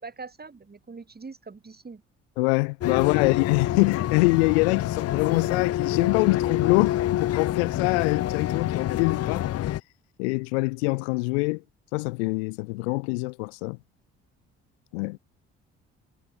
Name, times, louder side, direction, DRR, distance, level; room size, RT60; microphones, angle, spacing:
voice 1, 0.0-2.0 3.0-3.3, right 4 dB, 30° right, 6.7 m, -43 dB
voice 2, 2.4-9.4 10.2-11.6 11.9-13.8 14.9-15.2, left 27 dB, 75° left, 1.7 m, -24 dB
sound 1, 2.8-9.8, left 13 dB, 45° left, 0.8 m, -27 dB
figure-of-eight pair, 45°, 33 cm